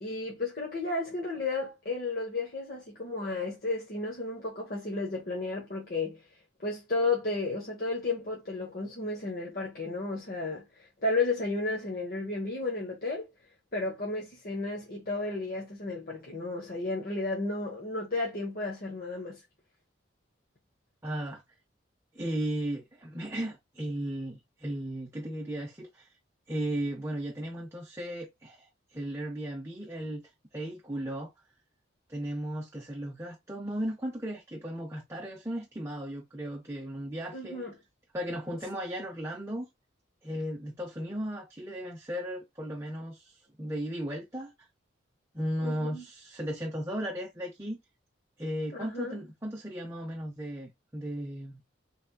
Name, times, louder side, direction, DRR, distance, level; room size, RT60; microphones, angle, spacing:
voice 1, 0.0-6.2 6.6-13.3 13.7-19.4 37.3-37.7 45.6-46.0 48.7-49.2, left 3 dB, 45° left, 1.2 m, -33 dB
voice 2, 21.0-21.4 22.1-26.1 26.5-30.2 30.5-31.3 32.1-37.6 38.1-39.7 40.2-44.5 45.3-47.8 48.4-51.6, right 1 dB, 15° right, 0.7 m, -36 dB
4.2 x 3.4 x 2.3 m
head